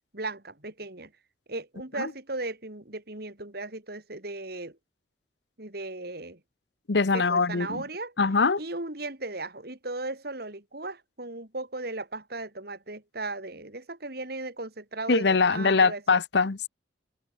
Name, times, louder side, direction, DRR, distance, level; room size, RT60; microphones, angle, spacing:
voice 1, 0.1-1.1 1.5-4.8 5.6-6.4 7.1-8.1 8.6-16.0, right 2 dB, 55° right, 3.4 m, -36 dB
voice 2, 6.9-7.8 8.2-8.6 15.1-16.7, left 4 dB, 65° left, 0.9 m, -23 dB
head